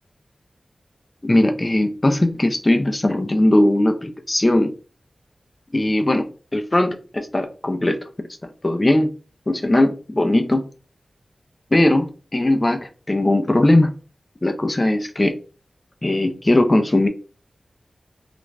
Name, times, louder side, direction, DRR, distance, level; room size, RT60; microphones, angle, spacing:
voice 1, 1.2-4.7 5.7-8.0 8.6-9.1 9.5-10.6 11.7-13.9 14.4-15.3 16.0-17.1, left 1 dB, 25° left, 5 dB, 0.4 m, -19 dB
2.4 x 2.1 x 3.2 m, 0.36 s
wide cardioid pair, 110°, 0 cm